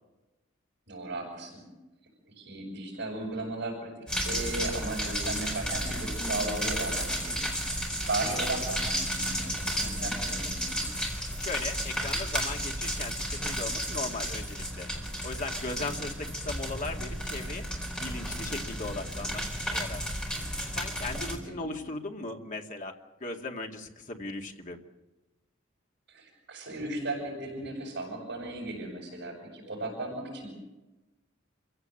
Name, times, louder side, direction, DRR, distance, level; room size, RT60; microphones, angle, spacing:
voice 1, 0.9-1.7 2.4-3.9 4.2-10.8 15.7-16.0 21.1-21.7 26.1-30.5, right 2 dB, 60° right, -2 dB, 6.9 m, -36 dB
sound 1, 4.1-21.3, equal, 5° left, 4.5 m, -33 dB
voice 2, 11.4-14.9 15.2-17.6 18.0-20.1 20.7-24.8, left 3 dB, 40° left, 3 dB, 2.1 m, -38 dB
27.5 x 16.0 x 7.8 m, 1.1 s
head